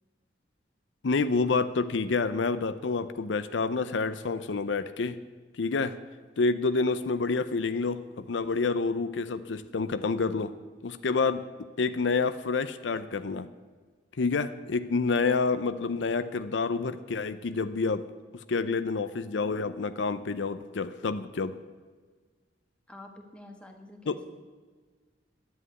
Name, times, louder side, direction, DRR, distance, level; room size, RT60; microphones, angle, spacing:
voice 1, 1.0-5.2 5.6-6.0 6.4-10.5 10.8-11.4 11.8-13.5 14.2-18.0 18.3-21.6 24.1-24.2, left 4 dB, 80° left, 12 dB, 0.6 m, -28 dB
voice 2, 22.9-24.3, left 1 dB, 5° left, 3 dB, 1.4 m, -48 dB
10.0 x 8.1 x 9.7 m, 1.5 s
head